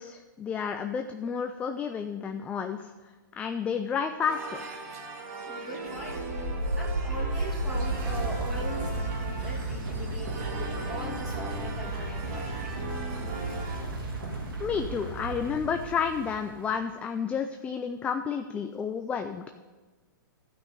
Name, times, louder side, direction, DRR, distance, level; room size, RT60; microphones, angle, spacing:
voice 1, 0.0-2.9 3.4-4.6 14.6-19.4, left 6 dB, 10° left, 7 dB, 0.3 m, -31 dB
sound 1, 4.2-13.8, right 3 dB, 40° right, 2.2 m, -39 dB
voice 2, 5.5-6.2 6.7-12.8, equal, 5° right, -5 dB, 2.5 m, -40 dB
sound 2, 5.8-16.7, right 2 dB, 90° right, 2.7 m, -33 dB
12.5 x 5.6 x 6.7 m, 1.3 s
hypercardioid pair, 140°, 12 cm